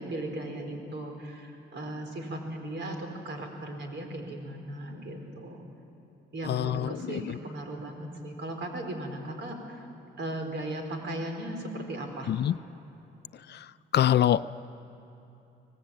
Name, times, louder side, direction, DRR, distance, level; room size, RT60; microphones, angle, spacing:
voice 1, 0.0-5.6 6.3-9.8 10.2-12.3, right 1 dB, 65° right, 4 dB, 4.6 m, -37 dB
voice 2, 6.5-7.4 12.3-12.5 13.5-13.6 13.9-14.5, left 11 dB, 60° left, 14 dB, 0.6 m, -25 dB
24.0 x 18.5 x 9.0 m, 2.9 s
cardioid pair, 90°, 20 cm